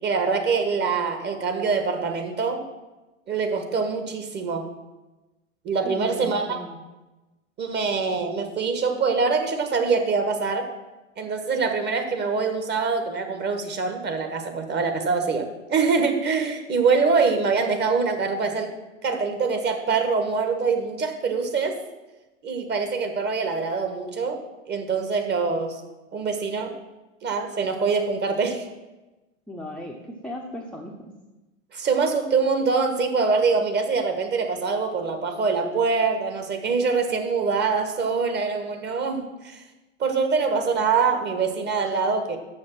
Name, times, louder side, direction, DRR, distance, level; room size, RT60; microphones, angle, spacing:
voice 1, 0.0-2.6 3.3-4.7 5.6-6.6 7.6-10.7 11.2-21.8 22.4-24.4 24.7-25.8 26.1-26.7 27.2-28.7 31.7-39.6 40.0-42.4, right 4 dB, 25° right, 6 dB, 1.3 m, -24 dB
voice 2, 5.8-6.8 29.5-30.0 30.2-30.9, left 1 dB, ahead, -1 dB, 0.7 m, -36 dB
6.6 x 6.4 x 7.4 m, 1.1 s
hypercardioid pair, 105°, 39 cm